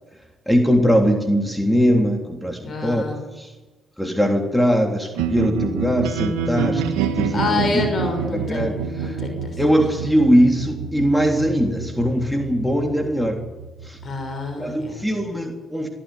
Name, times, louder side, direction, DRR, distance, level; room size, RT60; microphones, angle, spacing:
voice 1, 0.5-3.0 3.4-3.5 4.0-6.8 7.2-7.8 8.3-9.2 9.6-13.5 13.8-14.0 14.6-15.9, equal, 5° left, 3 dB, 3.4 m, -21 dB
voice 2, 2.6-3.2 7.3-9.6 14.0-15.0, left 4 dB, 45° left, 4 dB, 6.1 m, -27 dB
sound 1, 5.1-15.2, right 6 dB, 80° right, 1.6 m, -28 dB
23.0 x 14.0 x 9.9 m, 1.2 s
hypercardioid pair, 55°, 0 cm